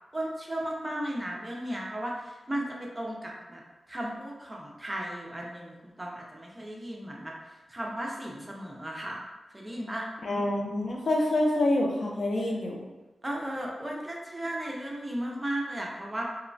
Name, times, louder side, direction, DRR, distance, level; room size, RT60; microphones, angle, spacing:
voice 1, 0.1-3.6 3.9-7.3 7.7-9.2 9.5-10.0 13.2-16.2, right 1 dB, 15° right, -2 dB, 0.4 m, -35 dB
voice 2, 10.2-12.8, left 1 dB, 60° left, -1 dB, 0.4 m, -26 dB
2.9 x 2.1 x 2.5 m, 1.1 s
wide cardioid pair, 120°, 0 cm